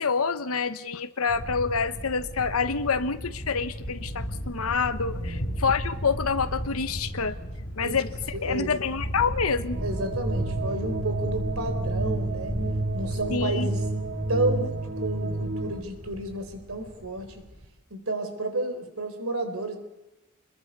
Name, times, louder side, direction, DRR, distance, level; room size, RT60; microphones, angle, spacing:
voice 1, 0.0-7.4 7.8-8.1 8.4-9.8 13.3-13.7, left 5 dB, 70° left, 11 dB, 1.1 m, -27 dB
sound 1, 1.3-17.7, equal, 50° left, 5.1 m, -35 dB
voice 2, 5.1-5.5 7.8-8.0 8.3-8.8 9.8-12.6 12.9-13.8 14.3-17.4 17.9-19.8, right 2 dB, 70° right, 7 dB, 3.9 m, -31 dB
sound 2, 8.5-15.8, right 2 dB, 50° right, 1.9 m, -30 dB
26.5 x 22.0 x 5.4 m, 0.96 s
head